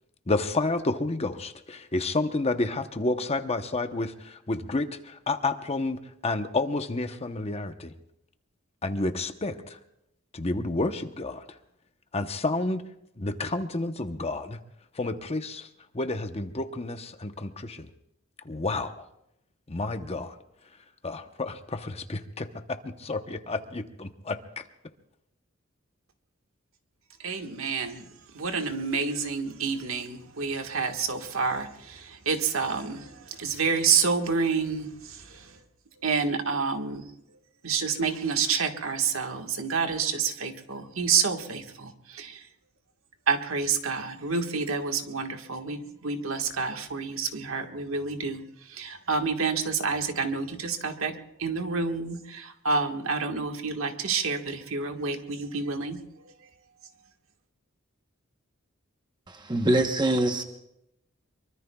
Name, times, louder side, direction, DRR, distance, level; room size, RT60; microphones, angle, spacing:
voice 1, 0.3-4.1 4.5-4.9 5.3-7.9 8.8-9.6 10.3-11.4 12.1-12.9 13.2-14.6 15.0-15.7 15.9-17.9 18.5-19.0 19.7-20.3 21.0-24.4, left 2 dB, 30° left, 8 dB, 0.9 m, -30 dB
voice 2, 27.2-28.1 28.3-35.6 36.0-37.1 37.6-42.5 43.3-56.3, right 5 dB, 75° right, 5 dB, 1.6 m, -29 dB
voice 3, 59.3-60.4, right 1 dB, 20° right, 4 dB, 1.0 m, -24 dB
24.0 x 23.5 x 2.3 m, 0.81 s
head